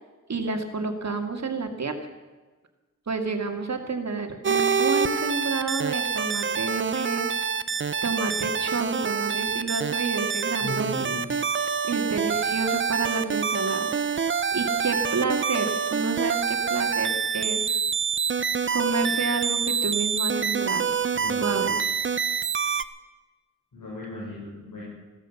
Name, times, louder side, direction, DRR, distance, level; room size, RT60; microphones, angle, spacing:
voice 1, 0.3-1.9 3.1-7.3 8.0-10.9 11.8-14.0 14.5-17.8 18.7-20.9 21.4-21.7, right 4 dB, 55° right, 5 dB, 2.1 m, -29 dB
sound 1, 4.4-22.8, right 6 dB, 40° right, 0.6 m, -26 dB
voice 2, 10.6-11.2 21.1-22.1 23.7-24.8, left 2 dB, 90° left, -6 dB, 6.5 m, -37 dB
16.0 x 13.0 x 7.0 m, 1.3 s
wide cardioid pair, 95°, 32 cm